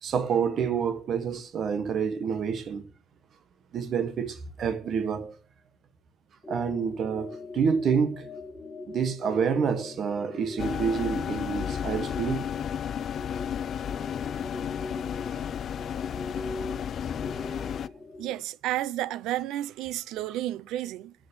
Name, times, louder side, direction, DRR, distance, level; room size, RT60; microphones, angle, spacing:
voice 1, 0.0-2.9 3.7-5.3 6.5-8.3 8.9-12.5, right 6 dB, 50° right, 1.1 m, -28 dB
sound 1, 6.4-18.3, left 2 dB, 20° left, 1.3 m, -42 dB
sound 2, 10.6-17.9, left 8 dB, 50° left, 0.3 m, -33 dB
voice 2, 18.2-21.1, right 14 dB, 90° right, 0.4 m, -31 dB
7.7 x 6.7 x 6.7 m
cardioid pair, 135°, 0 cm